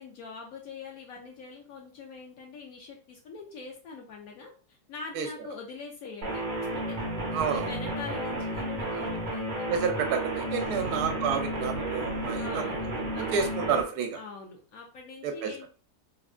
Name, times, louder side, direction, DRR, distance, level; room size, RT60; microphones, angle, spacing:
voice 1, 0.0-6.4 6.8-7.0 7.4-9.7 10.7-11.1 12.4-12.9 13.1-13.3 14.1-15.7, left 4 dB, 70° left, 0 dB, 1.0 m, -43 dB
sound 1, 6.2-13.8, right 1 dB, 50° right, 0.5 m, -32 dB
voice 2, 7.3-7.7 9.7-14.2 15.2-15.5, right 6 dB, 80° right, 5 dB, 1.1 m, -30 dB
3.4 x 2.1 x 2.4 m, 0.40 s
omnidirectional pair, 1.7 m